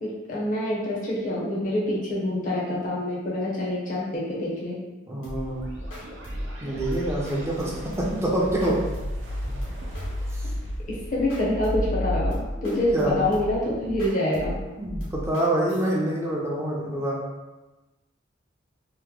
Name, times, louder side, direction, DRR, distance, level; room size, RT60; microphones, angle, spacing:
voice 1, 0.0-4.8 10.9-14.6, left 1 dB, 40° left, -5 dB, 0.6 m, -26 dB
voice 2, 5.1-5.7 6.6-8.8 10.3-10.5 12.6-13.3 14.8-17.2, right 1 dB, 15° right, -4 dB, 0.5 m, -26 dB
sound 1, 5.2-15.9, equal, 85° left, 1.0 m, -36 dB
sound 2, 5.5-12.3, left 1 dB, 85° right, 0.6 m, -34 dB
2.9 x 2.1 x 3.6 m, 1.1 s
head